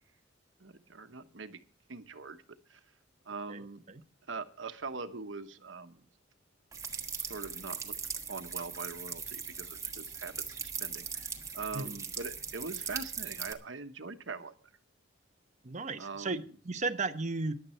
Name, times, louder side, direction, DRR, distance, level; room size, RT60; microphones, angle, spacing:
voice 1, 0.6-1.6 1.9-2.4 2.7-2.8 3.3-3.8 4.3-6.0 7.2-7.9 8.3-11.3 11.5-14.5 16.0-16.4, right 4 dB, 90° right, 9 dB, 1.2 m, -42 dB
voice 2, 3.5-4.0 11.7-11.9 15.6-17.6, right 3 dB, 40° right, 9 dB, 1.0 m, -35 dB
sound 1, 6.7-13.5, right 6 dB, 15° right, 1.4 m, -39 dB
15.0 x 11.0 x 4.4 m, 0.41 s
head